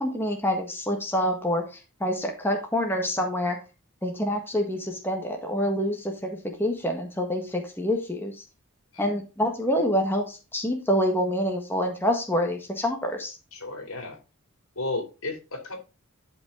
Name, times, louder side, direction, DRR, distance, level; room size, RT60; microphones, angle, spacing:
voice 1, 0.0-3.6 4.0-8.4 9.0-13.4, equal, 10° left, 2 dB, 1.5 m, -27 dB
voice 2, 13.5-14.2 14.8-15.8, left 2 dB, 75° left, 5 dB, 3.0 m, -33 dB
11.5 x 5.3 x 3.6 m, 0.30 s
head